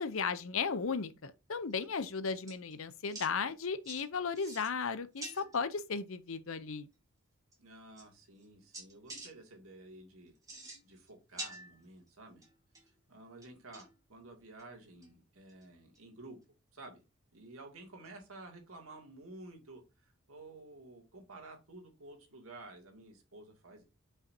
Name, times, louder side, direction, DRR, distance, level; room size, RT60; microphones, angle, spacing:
voice 1, 0.0-6.9, left 5 dB, 70° left, 0.7 m, -35 dB
sound 1, 1.7-2.0 2.5-2.7 3.1-3.3 3.8-4.0 4.3-4.8 5.2-5.6 6.9-7.0 7.5-7.6 8.0-8.4 8.7-9.3 10.3-11.1 11.4-12.1 12.4-12.9 13.4-14.0 14.6-14.7 15.0-15.1 15.5-15.6 15.9-16.0 18.0-18.1, right 2 dB, 15° right, 2.5 m, -47 dB
voice 2, 7.6-10.3 10.8-12.4 13.1-16.4 16.7-17.0 17.3-23.8, right 2 dB, 75° right, 2.5 m, -52 dB
8.4 x 5.6 x 2.8 m
head